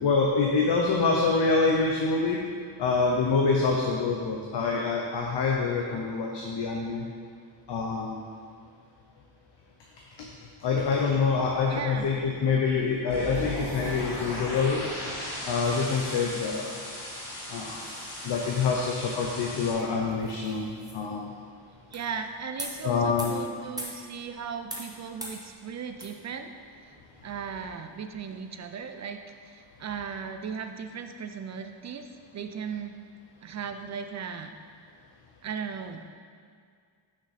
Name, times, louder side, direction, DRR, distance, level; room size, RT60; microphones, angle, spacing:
voice 1, 0.0-2.4 2.8-7.1 7.7-8.3 10.6-14.8 15.5-16.7 17.5-17.8 18.2-21.2 22.8-23.3, left 4 dB, 60° left, -1 dB, 0.8 m, -26 dB
sound 1, 11.5-28.4, right 1 dB, 10° right, 0.9 m, -47 dB
voice 2, 11.7-12.1 21.9-26.5 27.2-32.1 32.3-33.0 33.4-34.6 35.4-36.0, right 6 dB, 40° right, 7 dB, 0.4 m, -37 dB
sound 2, 13.1-19.7, left 1 dB, 80° left, 1.9 m, -37 dB
6.3 x 6.2 x 4.1 m, 2.1 s
wide cardioid pair, 160°, 49 cm